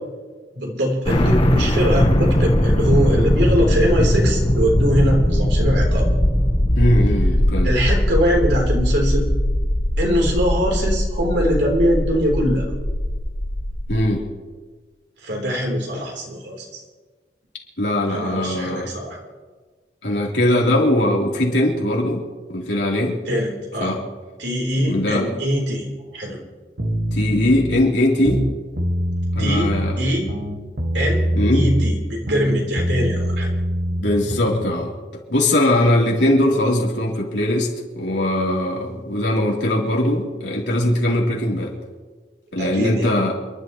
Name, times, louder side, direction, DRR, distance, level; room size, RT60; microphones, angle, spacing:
voice 1, 0.5-6.1 7.6-9.3 10.0-12.7 15.2-16.8 18.0-19.2 23.3-24.0 24.4-26.4 29.4-30.3 30.9-33.5 42.6-43.2, equal, 85° right, -1 dB, 3.7 m, -22 dB
sound 1, 1.1-14.1, left 1 dB, 30° left, 1.1 m, -19 dB
voice 2, 6.8-7.7 13.9-14.2 17.8-18.9 20.0-22.2 22.5-23.2 23.8-24.0 24.8-25.3 27.1-28.4 29.4-30.0 31.3-31.7 34.0-34.9 35.3-41.7 42.5-43.3, left 1 dB, 85° left, -2 dB, 3.5 m, -20 dB
sound 2, 26.8-27.8 28.2-30.0 30.3-32.0 32.3-34.7, equal, 65° right, 1.8 m, -23 dB
29.0 x 11.5 x 3.1 m, 1.4 s
head